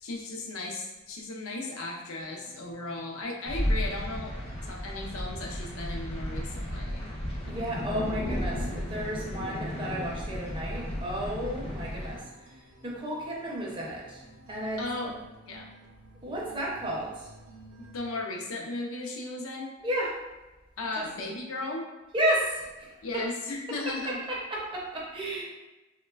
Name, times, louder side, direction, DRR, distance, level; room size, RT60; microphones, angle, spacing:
voice 1, 0.0-7.1 14.8-15.1 15.5-15.7 17.9-19.7 20.8-21.9 23.0-24.2, left 2 dB, 85° left, 0 dB, 0.5 m, -36 dB
sound 1, 2.2-18.2, right 2 dB, 80° right, 0.5 m, -54 dB
sound 2, 3.5-12.2, equal, 30° left, 0.4 m, -33 dB
voice 2, 7.5-12.2 12.8-14.2 14.5-15.1 16.2-17.3 19.8-20.1 20.9-21.1 22.1-22.9 24.0-25.4, right 1 dB, 25° right, -3 dB, 0.5 m, -32 dB
3.0 x 2.2 x 2.2 m, 1.1 s
head